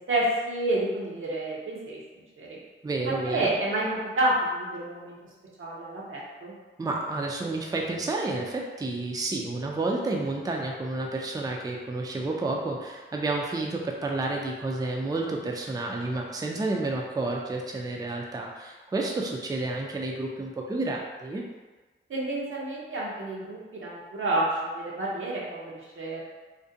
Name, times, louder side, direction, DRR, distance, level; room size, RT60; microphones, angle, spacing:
voice 1, 0.1-2.0 2.4-2.6 3.3-5.2 5.6-6.5 22.1-26.2, right 1 dB, 75° right, -5 dB, 0.7 m, -29 dB
voice 2, 2.8-3.5 6.8-21.4, right 2 dB, 20° right, 0 dB, 0.4 m, -30 dB
2.5 x 2.1 x 2.6 m, 1.3 s
cardioid pair, 50°, 21 cm